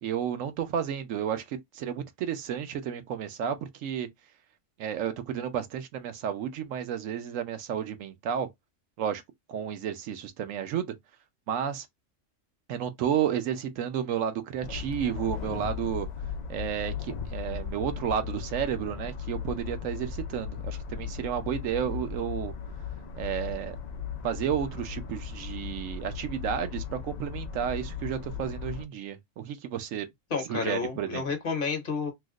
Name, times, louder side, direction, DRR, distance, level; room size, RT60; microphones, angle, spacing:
voice 1, 0.0-3.6 3.8-4.1 4.8-8.5 9.0-9.2 9.5-10.9 11.5-11.9 12.7-16.1 16.5-22.5 23.2-23.8 24.2-30.1 30.5-31.2, right 9 dB, 80° right, 1.0 m, -32 dB
sound 1, 14.6-28.9, left 6 dB, 75° left, 0.4 m, -37 dB
voice 2, 30.3-32.1, left 5 dB, 50° left, 0.9 m, -30 dB
3.0 x 2.1 x 3.6 m
omnidirectional pair, 1.3 m